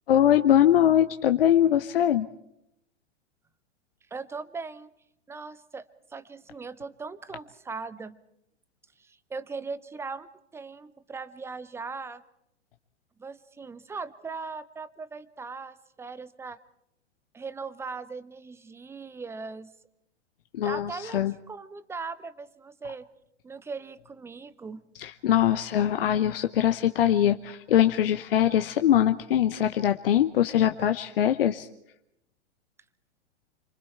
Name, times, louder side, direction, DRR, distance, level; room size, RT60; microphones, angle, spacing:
voice 1, 0.1-2.3 20.5-21.3 25.0-31.7, left 11 dB, 55° left, 8 dB, 1.0 m, -22 dB
voice 2, 4.1-4.9 5.3-5.9 6.1-8.2 9.0-12.2 13.2-16.6 17.3-19.7 20.6-23.1 23.4-24.8, right 4 dB, 5° right, 15 dB, 0.8 m, -39 dB
30.0 x 24.5 x 4.5 m, 0.81 s
figure-of-eight pair, 105°, 34 cm